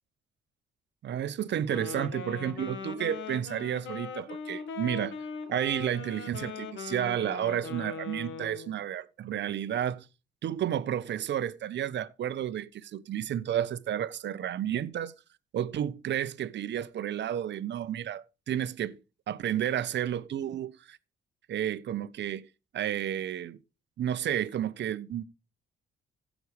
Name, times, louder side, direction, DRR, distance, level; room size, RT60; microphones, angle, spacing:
voice 1, 1.0-5.2 5.5-10.1 10.4-15.1 15.5-19.0 19.3-21.0 21.5-22.4 22.7-23.6 24.0-25.2, right 10 dB, 65° right, 1.0 m, -31 dB
Wind instrument woodwind instrument, 1.6-8.8, left 5 dB, 75° left, 1.9 m, -40 dB
16.0 x 6.3 x 3.4 m
cardioid pair, 90°, 20 cm